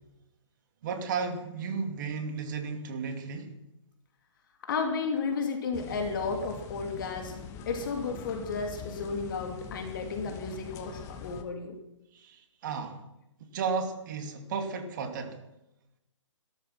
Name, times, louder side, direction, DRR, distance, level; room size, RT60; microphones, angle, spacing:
voice 1, 0.8-3.5 12.1-13.0 13.4-15.4, right 5 dB, 40° right, 6 dB, 2.6 m, -34 dB
voice 2, 4.6-7.4 7.7-11.8, left 4 dB, 45° left, 3 dB, 2.7 m, -33 dB
sound 1, 5.7-11.4, left 7 dB, 20° left, 1.2 m, -43 dB
17.0 x 13.0 x 6.1 m, 0.90 s
figure-of-eight pair, 135°, 16 cm